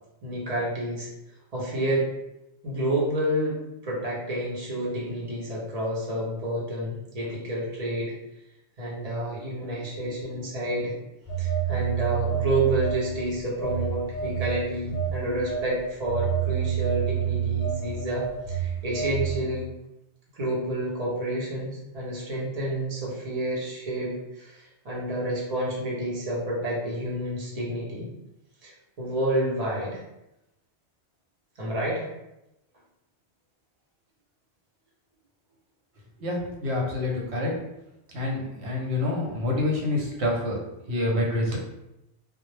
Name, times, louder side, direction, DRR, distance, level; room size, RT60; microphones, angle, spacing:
voice 1, 0.2-1.1 1.5-2.1 2.6-3.6 3.8-8.1 8.8-10.9 11.4-19.7 20.3-28.1 28.6-28.7 29.0-30.0 31.6-32.0, right 1 dB, 40° right, -5 dB, 0.7 m, -29 dB
Telephone, 11.3-13.2 13.6-19.4, right 8 dB, 55° left, 0.6 m, -28 dB
voice 2, 36.2-37.5 38.1-41.6, left 2 dB, 75° right, -2 dB, 1.0 m, -27 dB
2.1 x 2.0 x 3.1 m, 0.90 s
omnidirectional pair, 1.1 m